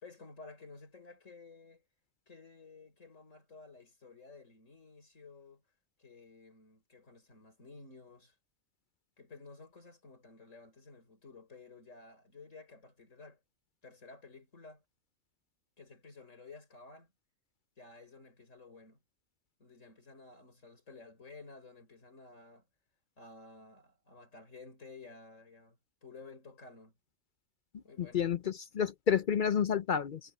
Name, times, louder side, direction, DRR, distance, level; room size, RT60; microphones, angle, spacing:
voice 1, 0.0-1.8 2.3-5.6 6.0-8.4 9.2-13.4 13.8-14.8 15.8-17.1 17.8-19.0 19.6-22.7 23.2-26.9 27.8-28.3, left 3 dB, 90° left, 5.2 m, -53 dB
voice 2, 28.0-30.2, left 7 dB, 50° left, 0.6 m, -30 dB
omnidirectional pair, 1.3 m